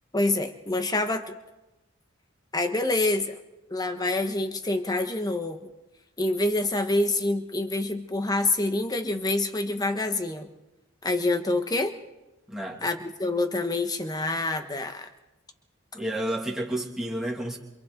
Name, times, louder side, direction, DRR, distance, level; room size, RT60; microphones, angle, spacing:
voice 1, 0.1-1.3 2.5-3.4 3.7-5.6 6.2-10.5 11.0-11.9 12.8-15.1, left 2 dB, 20° left, 7 dB, 1.3 m, -26 dB
voice 2, 12.5-12.9 15.9-17.6, right 1 dB, 5° right, -3 dB, 2.6 m, -31 dB
27.5 x 27.0 x 4.0 m, 1.0 s
head